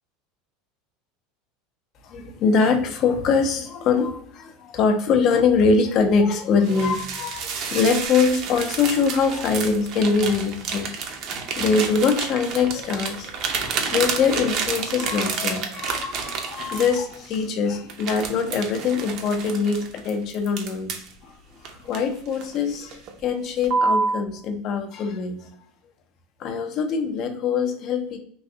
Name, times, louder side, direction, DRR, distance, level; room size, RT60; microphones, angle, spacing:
voice 1, 2.0-11.2 11.6-21.4 21.7-25.5 26.4-28.2, left 5 dB, 45° left, 7 dB, 0.5 m, -23 dB
sound 1, 6.6-17.4 17.9-21.1 21.6-22.6 22.9-23.2 23.6-24.2, right 5 dB, 50° right, 0.5 m, -29 dB
3.1 x 2.6 x 2.6 m, 0.65 s
supercardioid pair, 125°, 0 cm